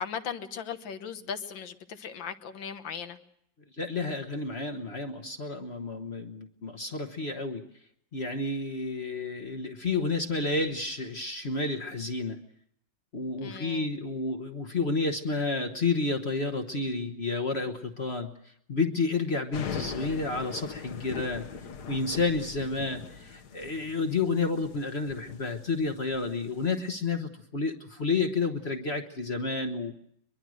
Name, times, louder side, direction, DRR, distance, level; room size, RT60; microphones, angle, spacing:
voice 1, 0.0-3.2 13.4-13.9, left 7 dB, 85° left, 1.9 m, -37 dB
voice 2, 3.8-7.6 8.1-12.4 13.1-18.3 18.7-21.5 21.9-29.9, left 3 dB, 40° left, 1.2 m, -30 dB
sound 1, 19.5-26.9, left 6 dB, 60° left, 1.6 m, -41 dB
23.0 x 22.5 x 6.3 m
omnidirectional pair, 2.0 m